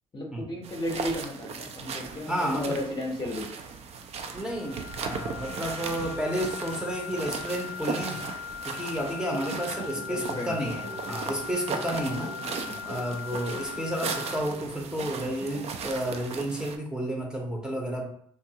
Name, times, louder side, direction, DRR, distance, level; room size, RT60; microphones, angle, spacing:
voice 1, 0.1-3.5 10.0-10.9 12.4-12.8, left 1 dB, 30° left, 0 dB, 0.7 m, -34 dB
sound 1, 0.6-16.8, right 5 dB, 45° right, 0.4 m, -37 dB
voice 2, 2.3-2.8 4.3-8.2 8.7-10.8 11.1-12.3 12.8-18.1, equal, 5° right, -1 dB, 0.7 m, -31 dB
sound 2, 4.4-14.4, left 9 dB, 60° left, 0.4 m, -40 dB
sound 3, 9.3-14.7 15.0-15.1 15.4-15.9, right 1 dB, 80° right, 0.8 m, -43 dB
2.5 x 2.4 x 2.7 m, 0.64 s
hypercardioid pair, 60°, 15 cm